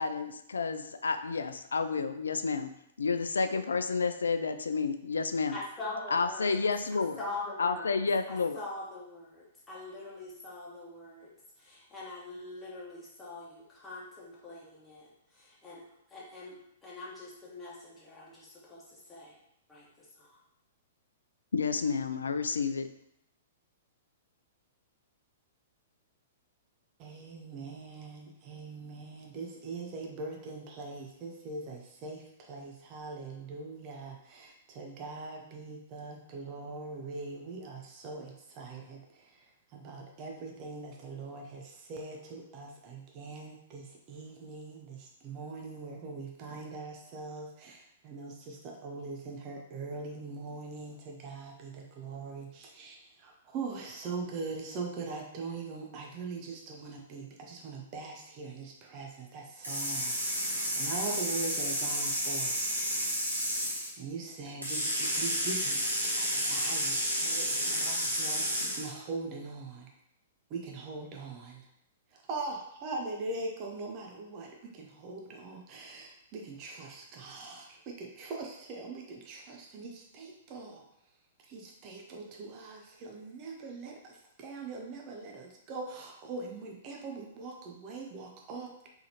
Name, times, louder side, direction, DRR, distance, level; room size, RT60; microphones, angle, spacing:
voice 1, 0.0-2.7 3.0-5.6 6.1-7.2 7.6-8.6 21.5-22.9, left 4 dB, 75° left, 9 dB, 0.3 m, -30 dB
voice 2, 5.5-6.6 7.2-8.0 8.3-11.3 11.6-15.8 16.1-19.3 19.7-20.3, left 2 dB, 15° left, -5 dB, 1.3 m, -43 dB
voice 3, 27.0-62.6 64.0-69.9 70.5-71.7 72.1-80.8 81.5-88.9, right 3 dB, 35° right, 1 dB, 0.6 m, -42 dB
sound 1, 59.6-63.9 64.6-68.9, equal, 85° right, 1.2 m, -31 dB
3.8 x 3.5 x 2.9 m, 0.76 s
figure-of-eight pair, 110°, 0 cm